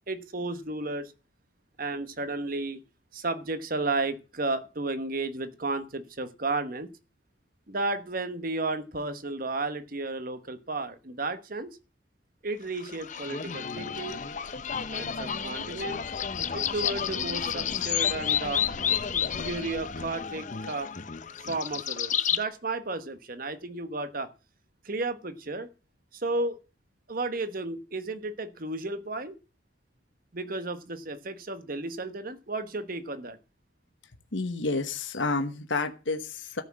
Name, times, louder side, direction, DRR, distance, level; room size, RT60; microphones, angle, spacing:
voice 1, 0.1-1.1 1.8-2.8 3.1-6.9 7.7-11.8 12.4-14.2 14.9-16.0 16.5-18.6 19.3-20.9 21.5-24.3 24.8-25.7 26.1-26.6 27.1-29.4 30.3-33.4, right 2 dB, 45° right, 10 dB, 1.2 m, -33 dB
sound 1, 12.7-22.4, left 8 dB, 40° left, 0.7 m, -31 dB
voice 2, 34.3-36.6, left 3 dB, 70° left, 7 dB, 1.2 m, -30 dB
13.5 x 6.0 x 7.5 m, 0.33 s
head